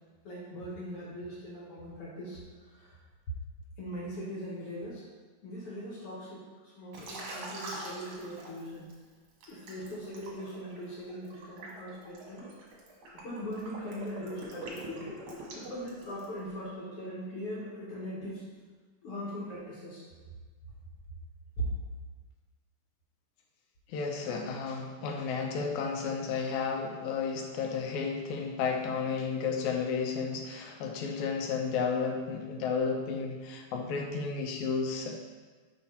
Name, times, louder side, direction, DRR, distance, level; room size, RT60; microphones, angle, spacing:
voice 1, 0.2-2.4 2.7-2.9 3.8-5.0 5.4-8.9 9.5-12.5 13.1-15.1 15.5-18.4 19.0-20.0 21.6-21.7, equal, 60° left, -5 dB, 1.5 m, -40 dB
Liquid, 6.9-8.9 9.4-16.4, right 2 dB, 55° right, 2.1 m, -44 dB
voice 2, 23.9-35.1, left 5 dB, 75° left, 2 dB, 1.7 m, -32 dB
6.0 x 5.2 x 4.2 m, 1.4 s
omnidirectional pair, 4.1 m